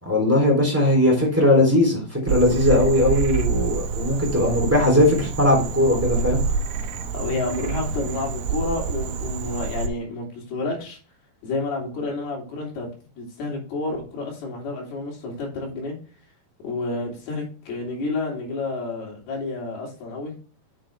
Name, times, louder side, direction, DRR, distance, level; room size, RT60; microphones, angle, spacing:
voice 1, 0.0-6.4, left 1 dB, 5° right, -1 dB, 2.6 m, -19 dB
Frog, 2.3-9.9, right 5 dB, 80° right, 1.7 m, -27 dB
voice 2, 7.1-11.0 11.4-12.9 13.2-16.0 16.6-20.3, left 2 dB, 70° left, -1 dB, 4.8 m, -30 dB
7.4 x 7.4 x 3.4 m, 0.38 s
omnidirectional pair, 4.7 m